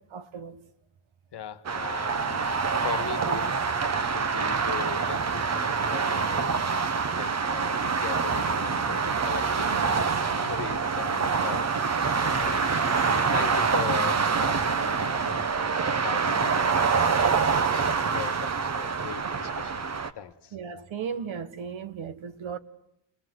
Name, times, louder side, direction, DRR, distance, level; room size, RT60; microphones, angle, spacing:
voice 1, 0.1-0.6 9.7-9.8 20.5-22.6, right 7 dB, 70° right, 1.7 m, -36 dB
voice 2, 1.3-19.8 20.1-20.6, left 9 dB, 55° left, 1.5 m, -40 dB
sound 1, 1.7-20.1, right 5 dB, 30° right, 1.0 m, -26 dB
Domestic sounds home sounds, 12.1-16.5, left 8 dB, 40° left, 1.3 m, -46 dB
28.5 x 21.5 x 7.9 m
wide cardioid pair, 170°, 49 cm